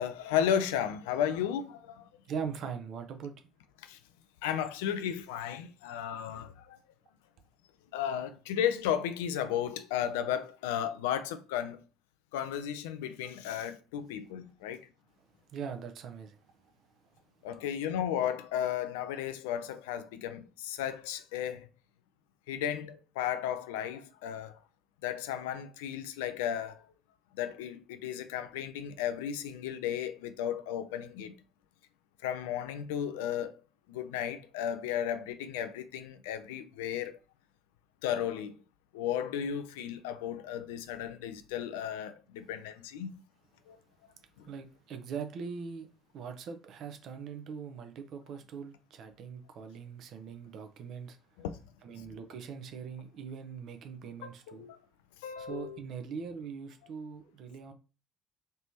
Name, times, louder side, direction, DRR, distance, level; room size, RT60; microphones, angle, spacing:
voice 1, 0.0-2.1 3.8-4.0 4.4-6.8 7.9-11.8 12.3-14.8 17.4-21.7 22.5-24.6 25.0-26.8 27.3-31.3 32.2-33.5 33.9-37.2 38.0-38.6 38.9-43.2 43.7-43.8 44.4-44.5 51.4-51.5 54.2-54.8 55.2-55.8, left 9 dB, 70° left, 0.4 m, -34 dB
voice 2, 2.3-3.4 15.5-16.4 44.5-45.9 46.1-51.2 51.8-54.7 55.4-57.7, right 6 dB, 55° right, 0.6 m, -41 dB
3.3 x 3.0 x 2.8 m
figure-of-eight pair, 50°, 0 cm